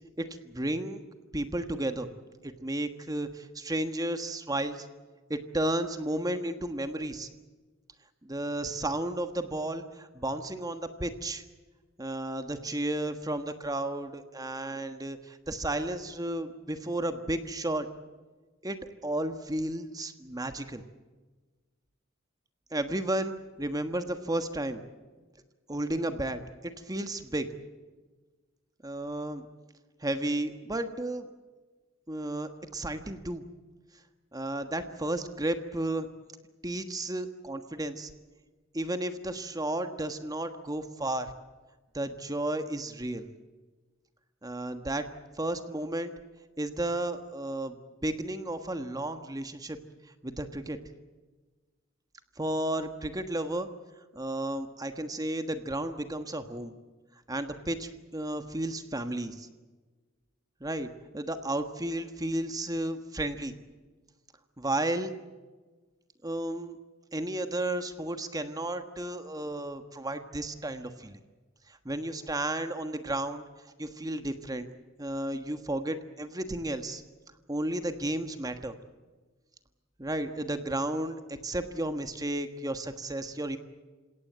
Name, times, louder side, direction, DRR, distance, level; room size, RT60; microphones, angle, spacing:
voice 1, 0.2-1.0 1.3-2.1 2.4-4.9 5.3-7.3 8.2-11.4 12.0-17.9 18.6-20.8 22.7-24.8 25.7-27.5 28.8-29.4 30.0-31.3 32.1-33.4 34.3-36.1 36.6-38.1 38.7-41.3 41.9-43.3 44.4-45.0 45.4-46.1 46.6-47.8 48.0-49.8 50.2-50.8 52.4-53.7 54.1-56.7 57.3-59.5 60.6-60.9 61.1-63.5 64.6-65.1 66.2-66.7 67.1-71.2 71.8-73.4 73.8-74.7 75.0-77.0 77.5-78.7 80.0-83.6, right 1 dB, 20° right, 8 dB, 1.4 m, -33 dB
28.0 x 17.5 x 7.9 m, 1.3 s
head